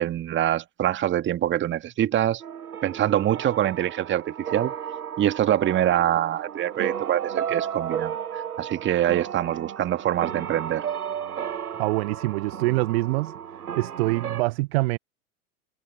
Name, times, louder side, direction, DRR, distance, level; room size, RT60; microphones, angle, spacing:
voice 1, 0.0-2.4 2.8-4.7 5.2-10.8, right 12 dB, 25° right, 2.1 m, -24 dB
sound 1, 2.4-14.4, right 8 dB, 90° right, 0.6 m, -33 dB
voice 2, 11.8-13.3 13.7-15.0, right 22 dB, 45° right, 0.9 m, -25 dB
figure-of-eight pair, 90°, 44 cm